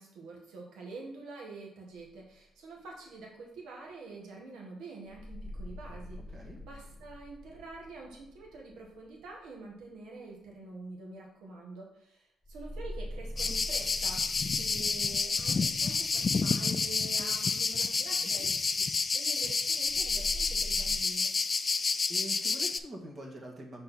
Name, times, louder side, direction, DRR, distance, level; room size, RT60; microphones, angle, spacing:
voice 1, 0.0-6.2 6.6-14.2 14.6-21.3, right 3 dB, 85° right, -1 dB, 1.8 m, -47 dB
sound 1, 1.9-2.1 5.1-9.8 12.4-17.5 19.8-21.0, equal, 10° right, 1.2 m, -44 dB
sound 2, 13.4-22.8, left 4 dB, 35° left, 0.4 m, -29 dB
voice 2, 18.2-18.5 22.1-23.8, right 1 dB, 40° right, 0 dB, 1.7 m, -44 dB
6.0 x 4.0 x 4.3 m, 0.75 s
cardioid pair, 90°, 0 cm